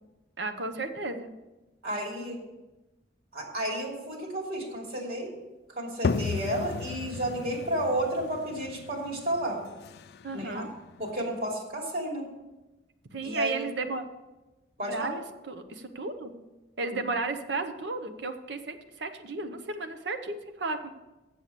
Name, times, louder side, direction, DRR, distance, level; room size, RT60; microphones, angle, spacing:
voice 1, 0.4-1.3 10.2-10.7 13.1-14.0 14.9-16.4 16.8-20.9, right 3 dB, 75° right, 8 dB, 0.9 m, -34 dB
voice 2, 1.8-2.4 3.3-5.3 5.7-9.6 10.3-10.6 11.0-12.2 13.2-13.5 14.8-15.1, right 1 dB, 55° right, -1 dB, 2.9 m, -32 dB
sound 1, 6.0-11.5, left 4 dB, 60° left, 0.4 m, -35 dB
7.9 x 7.5 x 6.8 m, 1.1 s
head